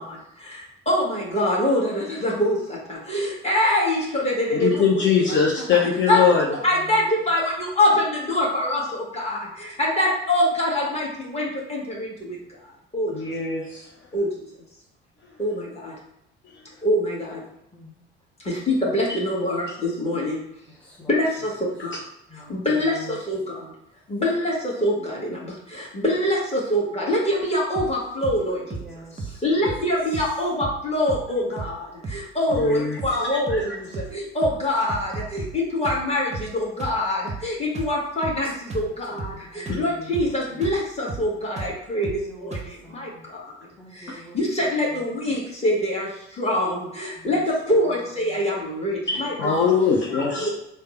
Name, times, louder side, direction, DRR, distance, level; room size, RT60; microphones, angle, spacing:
voice 1, 0.0-4.8 6.1-12.4 12.6-13.3 14.1-14.3 15.4-15.9 16.8-17.4 18.4-20.4 21.1-22.0 22.3-23.7 24.1-28.8 29.4-43.5 43.9-49.7 50.1-50.5, left 1 dB, 20° left, -4 dB, 1.5 m, -25 dB
voice 2, 4.5-6.5 13.1-13.8 32.5-33.0 33.3-33.7 49.1-50.5, left 6 dB, 40° left, -2 dB, 0.7 m, -22 dB
voice 3, 20.7-21.1 22.3-22.5 22.9-23.1 28.7-29.4 39.3-40.0 42.0-43.2 43.8-44.4 47.2-47.3 49.2-49.7 50.1-50.5, left 1 dB, 5° left, -4 dB, 0.9 m, -45 dB
sound 1, 27.8-28.0 28.2-28.4 28.7-28.9 29.2-29.4 29.7-29.9 30.1-30.4 30.6-30.8 31.1-31.3 31.6-31.8 32.0-32.3 32.5-32.7 33.0-33.2 33.5-33.7 33.9-34.2 34.4-34.6 34.9-35.6 35.8-36.1 36.3-36.5 36.8-37.0 37.3-37.5 37.8-38.0 38.2-38.4 38.7-38.9 39.2-39.4 39.7-39.9 40.1-40.4 40.6-40.8 41.1-41.3 41.6-41.8 42.0-42.3 42.5-42.7, right 4 dB, 25° right, 0.6 m, -34 dB
3.3 x 2.1 x 4.2 m, 0.84 s
figure-of-eight pair, 50°, 29 cm